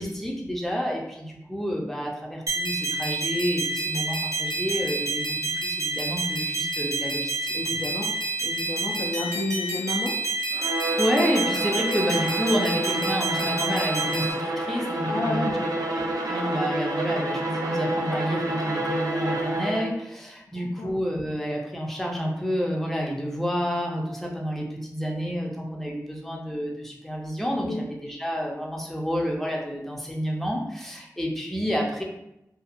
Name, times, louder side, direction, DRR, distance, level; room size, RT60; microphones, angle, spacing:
voice 1, 0.0-7.5 11.0-15.5 15.9-32.0, equal, 5° left, -1 dB, 0.6 m, -29 dB
sound 1, 2.5-14.3, right 3 dB, 60° right, 0.8 m, -28 dB
voice 2, 7.5-8.1 8.4-10.1 15.1-15.9 20.6-20.9 27.6-27.8, left 2 dB, 70° left, 1 dB, 0.4 m, -30 dB
Bowed string instrument, 10.5-20.0, right 1 dB, 85° right, 0.5 m, -29 dB
2.7 x 2.4 x 2.5 m, 0.86 s
wide cardioid pair, 55°, 6 cm